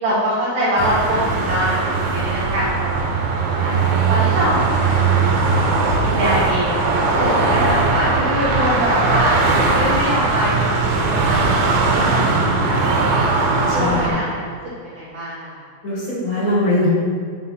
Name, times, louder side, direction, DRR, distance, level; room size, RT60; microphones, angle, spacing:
voice 1, 0.0-3.1 3.6-5.6 6.0-6.8 7.1-9.4 9.7-11.4 11.6-13.1 13.7-14.5 14.8-15.6, equal, 65° right, -9 dB, 1.6 m, -24 dB
sound 1, 0.8-14.1, right 3 dB, 80° right, 2.6 m, -19 dB
voice 2, 13.8-14.1 15.8-16.9, left 1 dB, 35° left, -8 dB, 1.5 m, -21 dB
6.2 x 4.1 x 5.5 m, 2.1 s
omnidirectional pair, 4.3 m